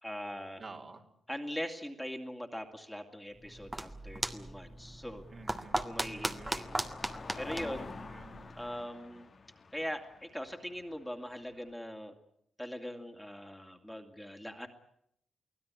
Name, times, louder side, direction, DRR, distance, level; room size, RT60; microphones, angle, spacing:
voice 1, 0.0-0.6 1.3-5.2 5.8-7.9 8.5-9.3 9.7-12.1 12.6-14.7, equal, 5° left, 3 dB, 2.5 m, -41 dB
voice 2, 0.6-1.0 5.3-5.8 6.0-6.5 7.6-8.3, right 3 dB, 40° right, 2 dB, 3.3 m, -50 dB
sound 1, 3.4-8.7, right 1 dB, 15° right, 1.8 m, -38 dB
Car passing by, 3.5-11.7, left 4 dB, 45° left, 1.7 m, -50 dB
24.5 x 16.0 x 9.8 m, 0.74 s
cardioid pair, 85°, 0 cm